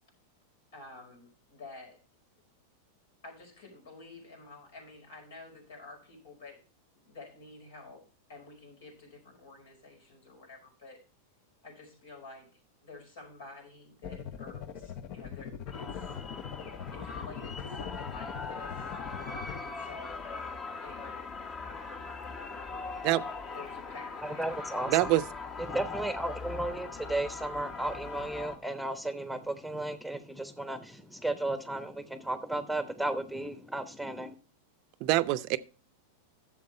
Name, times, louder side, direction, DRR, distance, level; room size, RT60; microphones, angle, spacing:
voice 1, 0.7-2.0 3.2-6.6 6.9-11.0 11.6-16.2 16.9-18.9 19.6-21.2 23.5-24.5, left 3 dB, 75° left, 5.1 m, -50 dB
sound 1, 14.0-19.6, left 8 dB, 50° left, 0.9 m, -41 dB
sound 2, 15.7-28.6, left 4 dB, 30° left, 1.4 m, -40 dB
voice 2, 24.2-25.1 25.7-34.3, right 1 dB, ahead, 1.0 m, -34 dB
voice 3, 24.9-25.2 35.0-35.6, right 17 dB, 50° right, 0.6 m, -25 dB
10.5 x 7.3 x 4.4 m
hypercardioid pair, 105°, 0 cm